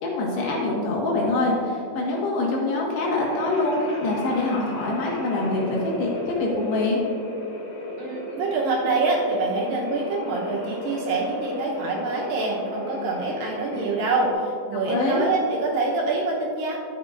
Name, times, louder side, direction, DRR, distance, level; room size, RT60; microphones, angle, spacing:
voice 1, 0.0-7.0 14.9-15.2, left 2 dB, 85° left, -3 dB, 3.8 m, -24 dB
sound 1, 3.1-14.3, left 1 dB, 45° left, 2.7 m, -35 dB
voice 2, 8.0-16.8, right 3 dB, 70° right, -2 dB, 2.4 m, -25 dB
12.0 x 8.3 x 2.6 m, 2.4 s
omnidirectional pair, 4.7 m